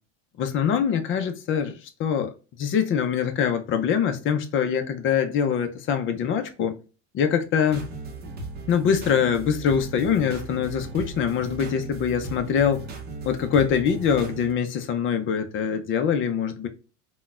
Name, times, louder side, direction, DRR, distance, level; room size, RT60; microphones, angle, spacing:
voice 1, 0.4-6.8 7.1-7.9 8.7-12.8 13.2-16.7, left 7 dB, 35° left, 0.5 m, -24 dB
sound 1, 7.7-14.5, right 3 dB, 25° right, 0.7 m, -37 dB
3.7 x 2.2 x 2.4 m
supercardioid pair, 120°, 37 cm